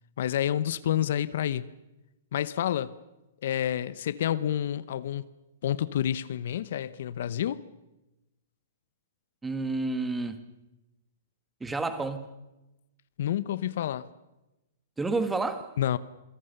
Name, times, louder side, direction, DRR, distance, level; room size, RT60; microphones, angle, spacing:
voice 1, 0.2-1.7 2.3-2.9 3.4-5.2 5.6-7.6 13.2-14.1 15.8-16.0, left 10 dB, 65° left, 0.9 m, -29 dB
voice 2, 9.4-10.4 11.6-12.3 15.0-15.7, right 3 dB, 10° right, 1.6 m, -30 dB
27.0 x 17.5 x 6.7 m
hypercardioid pair, 150°, 0 cm